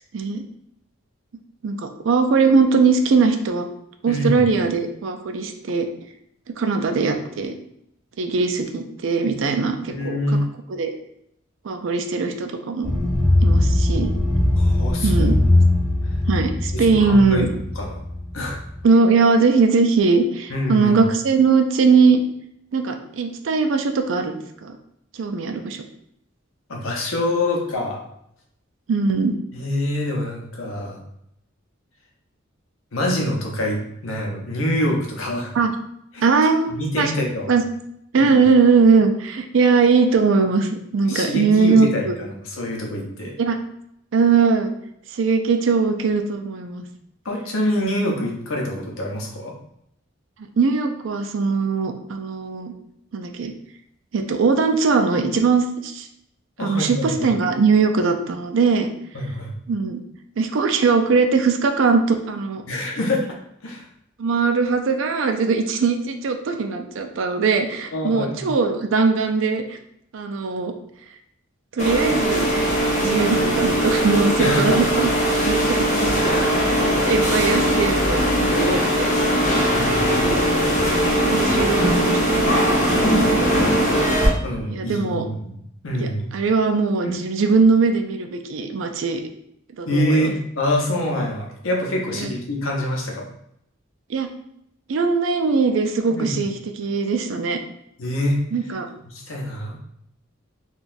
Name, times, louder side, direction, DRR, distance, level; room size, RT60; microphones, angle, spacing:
voice 1, 1.6-3.6 4.0-5.9 6.6-7.5 8.2-10.2 10.7-10.9 11.6-12.9 13.4-14.1 15.0-15.4 16.3-17.5 18.8-22.2 22.7-24.8 25.1-25.8 28.9-29.4 35.5-35.7 36.2-37.1 37.5-37.6 38.1-42.1 43.4-43.6 44.1-44.7 45.1-46.8 50.6-52.7 53.1-53.5 54.1-56.1 56.6-58.9 59.7-60.0 60.4-62.6 64.2-69.8 70.1-70.7 71.7-72.5 72.9-75.1 75.5-75.8 76.8-79.1 80.0-80.4 80.7-82.7 83.0-83.6 84.7-85.3 85.9-89.2 89.8-90.3 92.1-92.3 94.1-94.3 94.9-97.6 98.5-98.9, right 4 dB, 70° right, 6 dB, 0.4 m, -20 dB
voice 2, 4.1-4.5 9.8-10.4 14.6-15.3 16.7-17.4 17.8-18.0 18.3-18.6 20.5-21.1 26.7-28.0 29.5-31.0 32.9-35.5 36.1-36.3 36.7-37.5 38.2-38.4 41.1-43.3 47.2-49.5 56.6-57.3 59.1-59.5 62.7-63.3 63.6-63.9 67.9-68.5 74.4-74.8 79.7-80.3 84.4-85.6 85.8-86.3 87.0-87.2 89.9-93.2 96.1-96.3 98.0-98.4 99.1-99.8, left 1 dB, 85° left, 0 dB, 0.8 m, -25 dB
sound 1, 12.8-18.8, left 1 dB, 5° left, 0.5 m, -20 dB
sound 2, 71.8-84.3, equal, 35° left, 0.9 m, -20 dB
3.8 x 2.3 x 2.5 m, 0.74 s
head